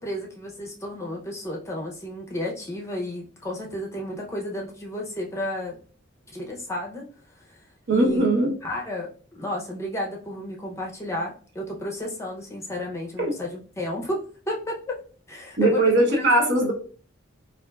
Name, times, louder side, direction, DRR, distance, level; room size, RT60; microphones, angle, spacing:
voice 1, 0.0-5.8 6.3-7.0 7.5-7.6 7.9-8.3 8.6-14.2 14.5-15.0 15.3-15.8 16.1-16.7, left 1 dB, 15° left, -1 dB, 0.6 m, -32 dB
voice 2, 7.9-8.5 13.2-13.3 15.6-16.7, right 2 dB, 60° right, 1 dB, 0.9 m, -20 dB
4.2 x 2.4 x 2.3 m, 0.41 s
head